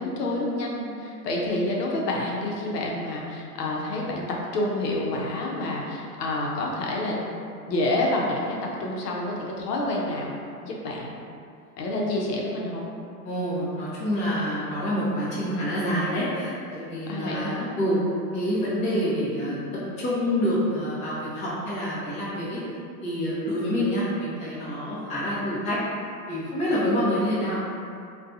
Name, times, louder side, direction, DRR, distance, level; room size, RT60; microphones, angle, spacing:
voice 1, 0.0-7.2 7.7-10.3 10.6-11.1 11.8-12.9 17.1-17.7 19.2-19.7, left 1 dB, 75° left, -2 dB, 0.7 m, -28 dB
voice 2, 13.2-18.0 18.3-19.6 20.0-22.6 23.0-25.8 26.3-27.5, equal, 15° left, -9 dB, 0.5 m, -27 dB
2.5 x 2.2 x 2.5 m, 2.5 s
hypercardioid pair, 115°, 48 cm